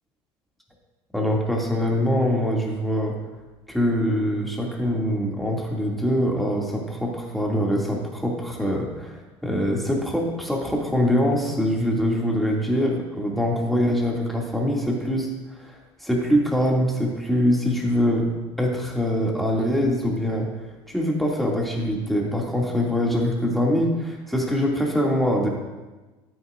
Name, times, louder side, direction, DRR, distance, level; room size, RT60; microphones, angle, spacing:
voice 1, 1.1-3.1 3.7-15.3 15.6-15.7 16.0-18.3 18.6-20.5 20.9-25.5, equal, ahead, -2 dB, 2.5 m, -23 dB
13.5 x 8.2 x 2.6 m, 1.2 s
hypercardioid pair, 65°, 14 cm